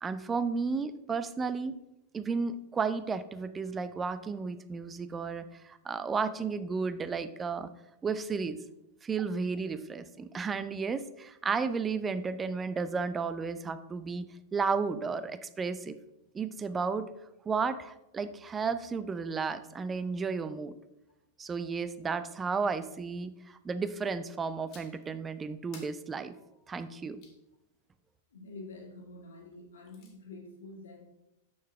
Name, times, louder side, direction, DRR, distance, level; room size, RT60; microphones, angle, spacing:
voice 1, 0.0-1.8 2.1-7.7 8.0-8.6 9.0-16.0 16.3-17.1 17.5-20.7 21.4-26.3 26.7-27.2, right 5 dB, 20° right, 13 dB, 0.4 m, -33 dB
sound 1, 24.7-25.1 25.7-27.4 29.5-30.1, left 4 dB, 40° left, 1.9 m, -56 dB
voice 2, 28.3-31.0, left 2 dB, 70° left, 0 dB, 1.8 m, -47 dB
6.7 x 6.4 x 3.3 m, 0.88 s
figure-of-eight pair, 95°, 0 cm